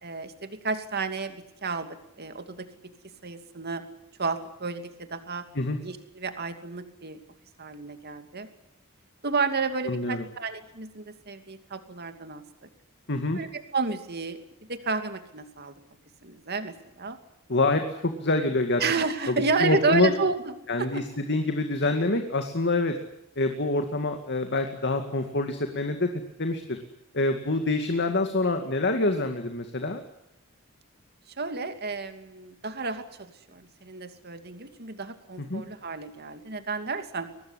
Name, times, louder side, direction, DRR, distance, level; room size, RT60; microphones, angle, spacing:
voice 1, 0.0-2.7 3.2-3.8 4.2-5.4 5.8-7.2 7.6-8.5 9.2-12.4 13.3-14.4 14.7-15.7 16.2-17.2 18.8-21.0 31.3-37.3, right 4 dB, 45° right, 8 dB, 2.6 m, -31 dB
voice 2, 9.9-10.2 13.1-13.4 17.5-18.8 19.3-19.4 19.6-20.1 20.7-22.9 23.4-26.1 26.4-26.8 27.1-30.0 35.4-35.6, left 2 dB, 50° left, 6 dB, 2.2 m, -26 dB
23.5 x 19.5 x 9.9 m, 0.83 s
head